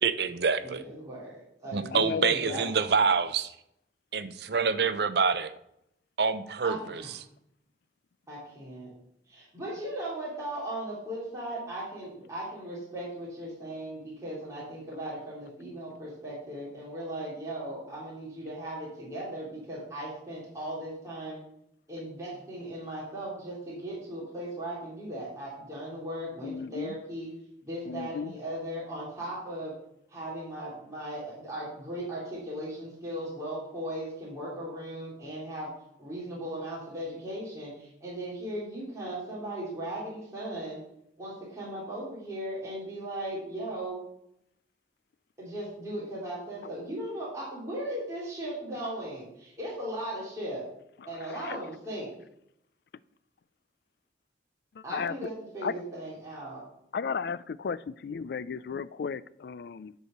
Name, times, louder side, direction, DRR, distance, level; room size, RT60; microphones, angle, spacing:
voice 1, 0.0-0.9 1.7-3.5 4.1-5.5 6.2-7.0, right 5 dB, 65° right, 12 dB, 0.7 m, -26 dB
voice 2, 0.6-2.8 6.6-7.1 8.3-8.9 9.3-21.4 21.9-27.3 27.6-29.7 30.1-35.7 36.0-40.8 41.2-44.0 45.4-50.7 51.1-52.1 54.8-56.6, right 1 dB, 20° right, -7 dB, 3.5 m, -37 dB
voice 3, 1.9-2.7 26.4-27.0 27.9-28.3 51.3-51.6 54.7-55.1 55.6-55.7 56.9-59.9, left 5 dB, 60° left, 18 dB, 0.4 m, -34 dB
10.5 x 4.8 x 6.6 m, 0.76 s
head